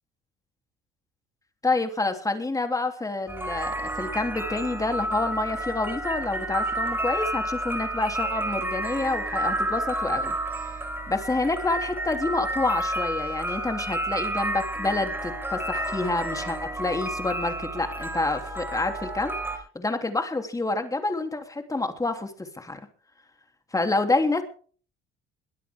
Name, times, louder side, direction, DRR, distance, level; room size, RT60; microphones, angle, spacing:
voice 1, 1.6-10.3 10.6-10.7 11.1-19.4 19.7-22.8 23.7-24.4, left 2 dB, 15° left, 6 dB, 3.2 m, -28 dB
sound 1, 3.3-19.6, right 1 dB, 10° right, 4.9 m, -30 dB
22.0 x 12.5 x 3.7 m, 0.43 s
cardioid pair, 95°, 21 cm